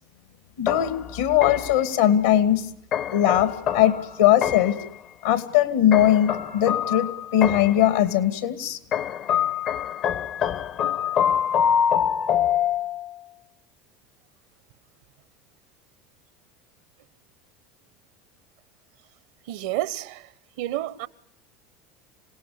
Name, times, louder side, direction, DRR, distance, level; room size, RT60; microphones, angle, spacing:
voice 1, 0.6-2.6 3.1-4.8 5.2-8.8, left 11 dB, 75° left, 2.5 m, -20 dB
sound 1, 0.7-1.9 2.9-4.9 5.9-7.9 8.9-13.2, left 9 dB, 50° left, 1.1 m, -25 dB
voice 2, 19.5-20.3 20.6-21.1, right 15 dB, 65° right, 1.1 m, -29 dB
27.0 x 18.0 x 9.8 m
hypercardioid pair, 75°, 0 cm